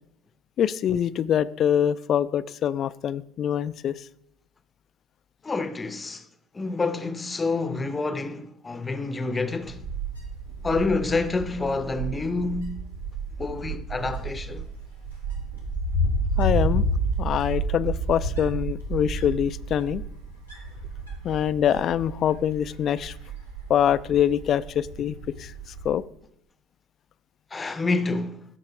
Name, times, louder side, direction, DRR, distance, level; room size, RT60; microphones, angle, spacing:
voice 1, 0.6-4.0 16.4-16.8 17.2-20.0 21.2-23.1 23.7-25.5 25.8-26.0, left 9 dB, 40° left, 0.4 m, -24 dB
voice 2, 5.4-6.3 6.5-9.8 10.6-12.8 13.4-14.7 27.5-28.4, left 3 dB, 20° left, 0.8 m, -28 dB
Wind, 9.6-25.9, right 2 dB, 85° right, 2.1 m, -31 dB
13.0 x 4.6 x 4.4 m
figure-of-eight pair, 60°, 0 cm